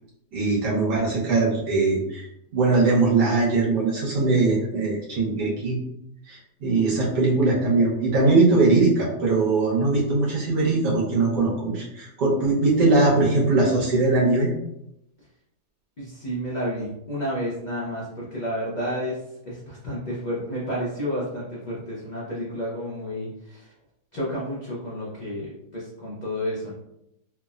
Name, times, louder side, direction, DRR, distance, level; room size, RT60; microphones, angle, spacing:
voice 1, 0.3-2.3 2.5-5.8 6.2-14.5, right 3 dB, 80° right, -5 dB, 1.5 m, -21 dB
voice 2, 16.0-19.2 19.4-23.7 24.1-26.7, equal, 85° left, -7 dB, 0.4 m, -31 dB
3.4 x 2.0 x 2.3 m, 0.81 s
omnidirectional pair, 1.8 m